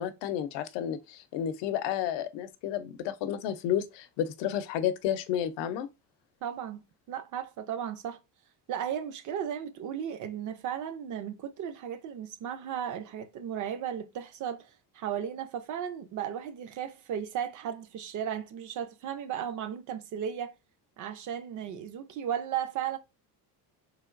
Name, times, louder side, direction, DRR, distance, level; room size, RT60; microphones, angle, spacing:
voice 1, 0.0-5.9, left 10 dB, 85° left, 0.7 m, -31 dB
voice 2, 6.4-8.2 8.7-20.5 21.0-23.0, right 9 dB, 45° right, 0.5 m, -35 dB
3.7 x 3.3 x 2.5 m
cardioid pair, 155°, 41 cm